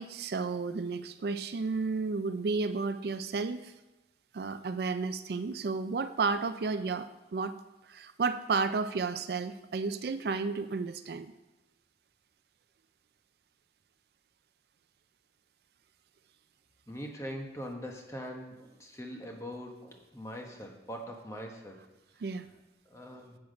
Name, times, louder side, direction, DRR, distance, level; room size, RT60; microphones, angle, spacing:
voice 1, 0.0-3.7 4.3-7.5 7.9-11.3 22.2-22.5, right 4 dB, 60° right, 11 dB, 0.4 m, -32 dB
voice 2, 16.9-21.8 22.9-23.4, equal, 15° left, 2 dB, 1.1 m, -42 dB
8.2 x 7.0 x 5.1 m, 1.1 s
head